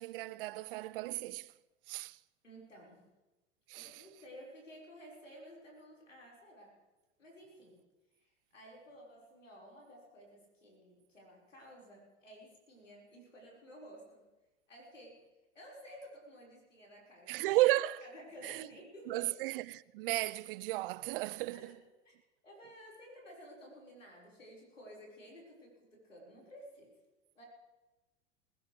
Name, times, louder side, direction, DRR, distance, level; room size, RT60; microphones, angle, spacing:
voice 1, 0.0-1.5 1.9-2.2 3.7-4.0 17.3-18.0 18.4-18.7 19.1-21.8, right 18 dB, 50° right, 0.5 m, -34 dB
voice 2, 2.4-3.1 3.8-6.8 7.2-7.8 8.1-14.2 14.7-15.2 15.5-17.5 18.0-19.4 21.5-21.8 22.0-22.2 22.4-26.9 27.4-27.5, equal, 90° left, 5.3 m, -54 dB
20.0 x 15.5 x 3.4 m
hypercardioid pair, 95°, 36 cm